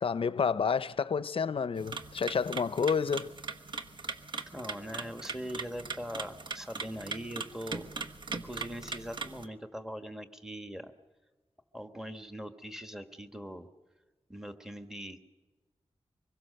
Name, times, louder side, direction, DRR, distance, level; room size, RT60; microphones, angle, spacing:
voice 1, 0.0-3.3, left 6 dB, 60° left, 0.6 m, -29 dB
sound 1, 1.8-9.5, right 4 dB, 45° right, 1.3 m, -40 dB
voice 2, 4.5-7.9 8.3-10.9 11.7-13.7 14.3-15.2, equal, 5° right, 1.3 m, -41 dB
25.0 x 22.0 x 6.6 m
wide cardioid pair, 150°, 11 cm